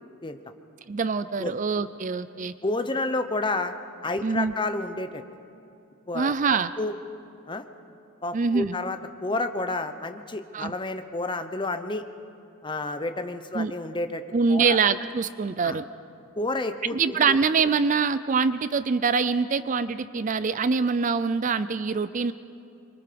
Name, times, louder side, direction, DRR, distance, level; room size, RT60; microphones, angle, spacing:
voice 1, 0.9-2.5 4.2-4.5 6.1-6.7 8.3-8.7 10.5-10.7 13.5-13.7 14.3-15.9 16.9-22.3, right 5 dB, 35° right, 14 dB, 0.4 m, -24 dB
voice 2, 2.6-3.7 4.0-5.2 6.1-6.9 7.5-7.6 8.2-12.0 12.6-14.2 14.5-14.8 15.6-15.8 16.4-17.4, left 2 dB, 20° left, 8 dB, 0.8 m, -30 dB
26.0 x 23.5 x 5.2 m, 2.6 s
head